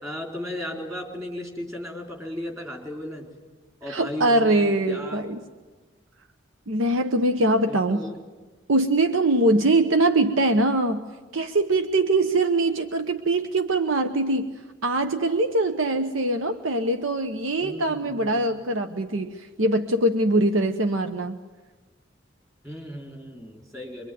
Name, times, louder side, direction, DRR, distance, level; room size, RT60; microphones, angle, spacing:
voice 1, 0.0-3.3 3.8-5.2 7.7-8.2 9.6-9.7 17.6-18.5 22.6-24.1, left 1 dB, 15° right, 2 dB, 4.2 m, -35 dB
voice 2, 3.9-5.4 6.7-8.1 8.7-11.1 11.3-14.5 14.8-21.4, right 2 dB, 80° right, 8 dB, 1.0 m, -22 dB
24.0 x 24.0 x 9.4 m, 1.3 s
head